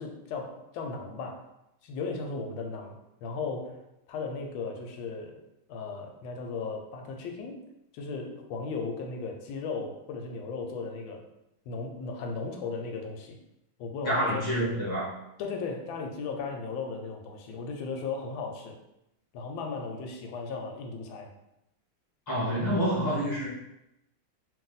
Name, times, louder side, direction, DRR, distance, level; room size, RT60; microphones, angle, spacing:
voice 1, 0.0-1.4 1.8-7.6 7.9-11.3 11.7-13.4 13.8-14.5 15.4-18.8 19.3-21.3, left 4 dB, 85° left, 3 dB, 1.3 m, -36 dB
voice 2, 14.0-15.1 22.3-23.5, equal, 20° left, -5 dB, 0.6 m, -27 dB
2.9 x 2.6 x 3.8 m, 0.87 s
omnidirectional pair, 2.1 m